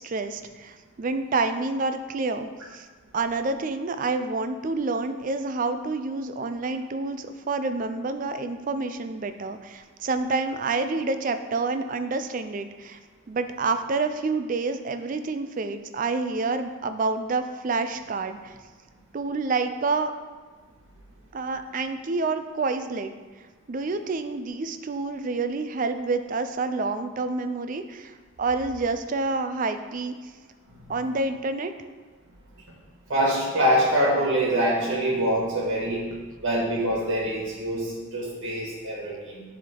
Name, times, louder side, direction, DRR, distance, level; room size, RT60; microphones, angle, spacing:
voice 1, 0.0-2.9 3.1-13.0 13.3-18.6 19.1-20.1 21.3-23.1 23.7-30.3 30.9-31.7, right 3 dB, 40° right, 9 dB, 0.4 m, -28 dB
voice 2, 33.1-36.0 36.4-39.4, equal, 60° right, -5 dB, 1.6 m, -25 dB
9.5 x 3.5 x 3.7 m, 1.4 s
head